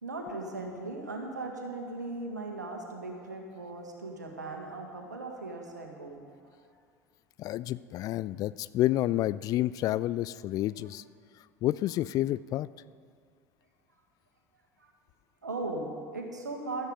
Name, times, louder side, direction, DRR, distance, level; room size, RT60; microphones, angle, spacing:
voice 1, 0.0-6.2 14.8-14.9 15.4-16.9, right 2 dB, 80° right, 2 dB, 1.7 m, -38 dB
voice 2, 7.4-11.0 11.6-12.7, left 14 dB, 40° left, 18 dB, 0.3 m, -29 dB
16.0 x 13.0 x 3.8 m, 2.1 s
figure-of-eight pair, 70°, 9 cm